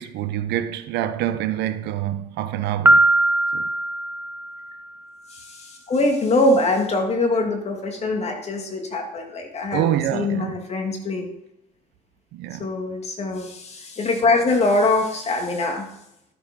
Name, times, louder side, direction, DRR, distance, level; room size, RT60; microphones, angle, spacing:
voice 1, 0.0-3.1 3.5-3.6 9.7-10.6 12.3-12.7, right 12 dB, 85° right, 0.9 m, -26 dB
Piano, 2.9-4.8, right 2 dB, 15° right, 0.6 m, -19 dB
voice 2, 5.3-9.8 10.1-11.3 12.6-15.9, left 2 dB, 40° left, 2.4 m, -23 dB
13.0 x 6.8 x 5.3 m
cardioid pair, 110°, 17 cm